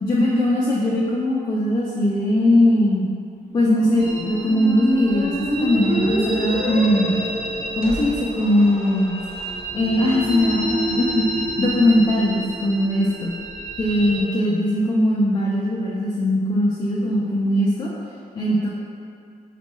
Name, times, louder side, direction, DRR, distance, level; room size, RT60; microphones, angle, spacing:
voice 1, 0.0-3.1 3.5-7.1 7.8-9.2 9.7-13.3 13.8-18.0 18.4-18.7, left 1 dB, 30° left, -5 dB, 0.4 m, -20 dB
Squeak, 3.5-9.5, equal, 70° left, 0.7 m, -28 dB
sound 1, 4.0-14.2, right 1 dB, 85° right, 0.7 m, -30 dB
4.1 x 2.2 x 3.0 m, 2.4 s
wide cardioid pair, 135°, 16 cm